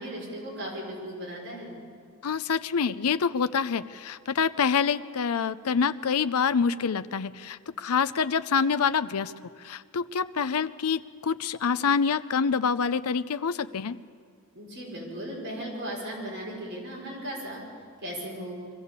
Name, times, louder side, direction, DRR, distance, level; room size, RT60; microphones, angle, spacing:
voice 1, 0.0-1.8 14.5-17.6 18.0-18.6, equal, 50° right, -3 dB, 5.3 m, -36 dB
voice 2, 2.2-9.3 9.6-14.0, left 6 dB, 80° left, 14 dB, 0.6 m, -26 dB
23.0 x 14.5 x 8.1 m, 2.1 s
head